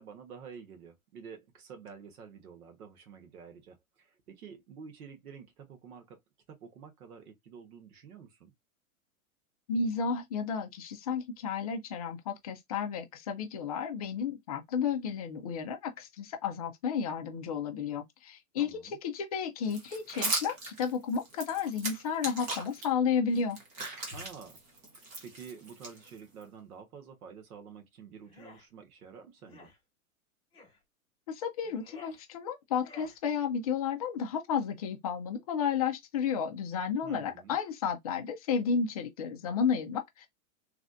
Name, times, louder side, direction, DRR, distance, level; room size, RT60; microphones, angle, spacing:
voice 1, 0.0-6.2 6.5-8.5 18.6-19.0 24.1-24.6 24.9-29.7 37.0-37.6, right 6 dB, 85° right, 1.4 m, -49 dB
voice 2, 9.7-23.6 31.3-40.3, left 6 dB, 30° left, 0.4 m, -32 dB
sound 1, 19.7-22.9 23.3-26.4, right 2 dB, 20° right, 0.6 m, -38 dB
sound 2, 28.2-28.7 29.4-29.8 30.5-30.8 31.6-32.2 32.8-33.2, left 3 dB, 10° left, 1.1 m, -53 dB
3.3 x 2.4 x 2.5 m
supercardioid pair, 155°, 43 cm